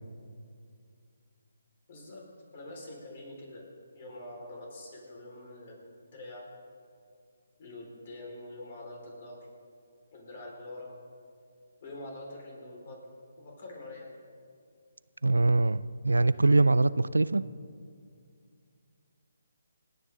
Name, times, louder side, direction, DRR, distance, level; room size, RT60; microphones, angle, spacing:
voice 1, 1.9-2.2 2.5-3.7 3.9-6.4 7.6-9.4 10.1-10.9 11.8-13.0 13.4-14.1, left 2 dB, 45° left, -2 dB, 4.6 m, -45 dB
voice 2, 15.2-17.4, right 2 dB, 85° right, 17 dB, 0.4 m, -23 dB
28.0 x 9.6 x 3.8 m, 2.3 s
figure-of-eight pair, 145°, 0 cm